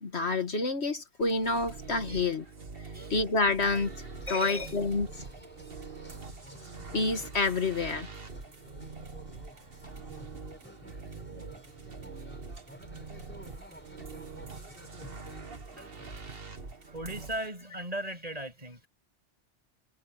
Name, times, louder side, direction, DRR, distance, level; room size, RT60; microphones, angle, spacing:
voice 1, 0.0-2.5 3.1-4.0 4.3-5.1 6.9-8.1, left 3 dB, 65° left, 2.0 m, -28 dB
sound 1, 1.2-17.5, right 4 dB, 55° right, 2.1 m, -44 dB
sound 2, 3.7-16.1, equal, 10° left, 4.9 m, -53 dB
voice 2, 4.3-4.8 15.8-16.1 16.7-18.9, equal, 30° right, 7.6 m, -38 dB
omnidirectional pair, 1.2 m